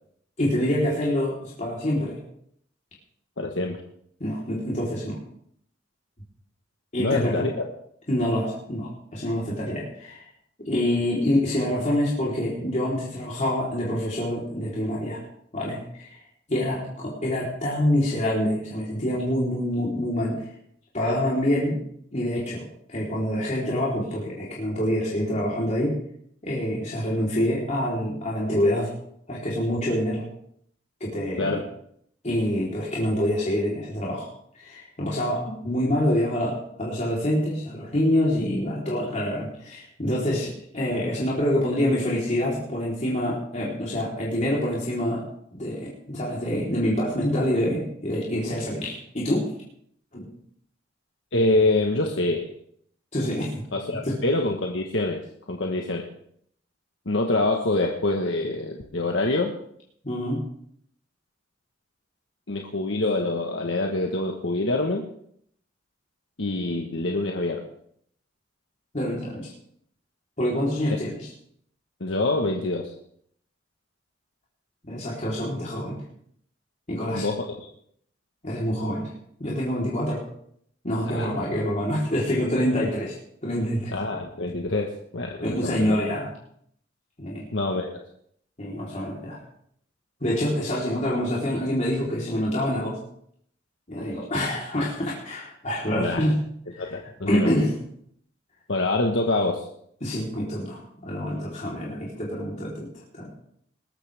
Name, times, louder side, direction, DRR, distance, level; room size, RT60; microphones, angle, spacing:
voice 1, 0.4-2.2 4.2-5.2 6.9-7.3 8.1-10.3 10.6-15.2 15.5-16.2 16.5-20.4 20.9-21.8 22.1-22.6 22.9-26.0 26.4-28.9 29.3-30.2 31.0-31.5 32.2-34.3 34.6-45.2 45.5-49.4 50.1-50.3 53.1-53.6 54.0-54.2 60.0-60.4 68.9-69.5 70.4-71.3 74.9-76.0 76.9-77.3 78.4-79.1 79.4-80.2 80.8-83.1 83.4-83.9 85.4-86.3 87.2-87.4 88.6-89.4 90.2-93.0 93.9-96.5 97.3-97.7 100.0-103.3, left 1 dB, 40° left, -6 dB, 3.8 m, -26 dB
voice 2, 3.4-3.8 7.0-7.6 31.4-31.6 51.3-52.5 53.7-55.2 55.5-56.0 57.0-59.5 62.5-65.0 66.4-67.7 72.0-72.9 77.1-77.7 81.1-81.5 83.9-86.0 87.5-88.0 95.9-96.3 96.8-97.5 98.7-99.7, left 2 dB, 75° left, 2 dB, 1.4 m, -25 dB
21.0 x 13.5 x 3.5 m, 0.68 s
head